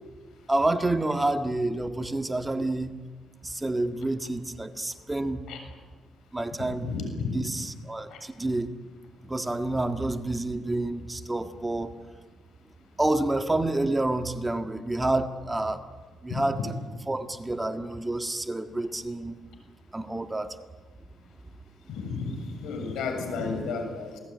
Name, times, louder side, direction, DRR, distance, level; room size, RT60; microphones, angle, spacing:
voice 1, 0.5-3.0 3.4-5.5 6.3-6.9 7.3-8.7 9.2-11.9 13.0-15.8 16.2-16.6 17.1-19.3 19.9-20.6, right 2 dB, 15° right, 7 dB, 1.7 m, -28 dB
voice 2, 6.8-7.3 8.1-8.2 16.3-16.4 21.9-22.3 22.6-24.2, left 5 dB, 80° left, 5 dB, 7.2 m, -32 dB
28.0 x 19.0 x 9.6 m, 1.4 s
cardioid pair, 90°, 0 cm